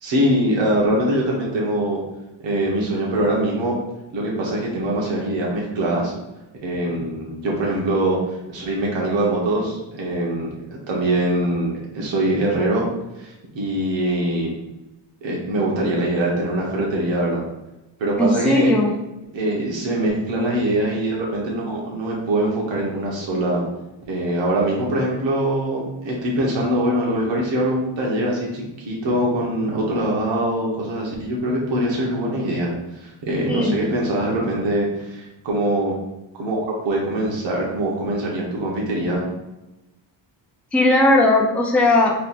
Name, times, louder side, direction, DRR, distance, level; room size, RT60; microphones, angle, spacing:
voice 1, 0.0-2.0 2.4-3.7 4.1-6.1 6.6-12.9 13.2-13.3 13.5-14.5 15.2-17.4 18.0-18.7 19.3-23.6 24.0-32.7 33.0-35.9 36.3-39.3, right 1 dB, 65° right, -3 dB, 1.2 m, -23 dB
voice 2, 18.2-18.9 33.5-33.8 40.7-42.1, left 2 dB, 5° left, 0 dB, 0.4 m, -17 dB
3.3 x 2.5 x 4.1 m, 0.96 s
cardioid pair, 115°, 47 cm